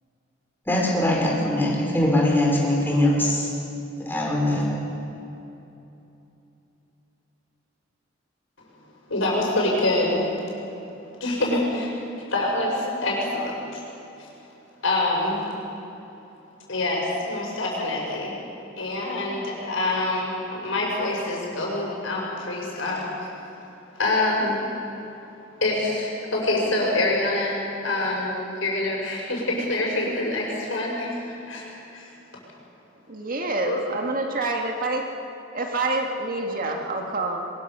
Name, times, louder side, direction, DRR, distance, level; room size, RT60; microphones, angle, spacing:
voice 1, 0.7-3.5 4.0-4.7, left 1 dB, 10° left, -3 dB, 4.9 m, -22 dB
voice 2, 9.1-10.2 11.2-11.9 12.3-13.8 14.8-15.4 16.7-18.3 18.8-23.0 24.0-24.6 25.6-27.6 27.8-31.2 31.5-32.0 33.6-33.8, left 2 dB, 80° left, -2 dB, 6.4 m, -25 dB
voice 3, 33.1-35.0 35.5-37.4, right 2 dB, 45° right, 2 dB, 2.0 m, -27 dB
22.5 x 21.5 x 7.0 m, 2.9 s
head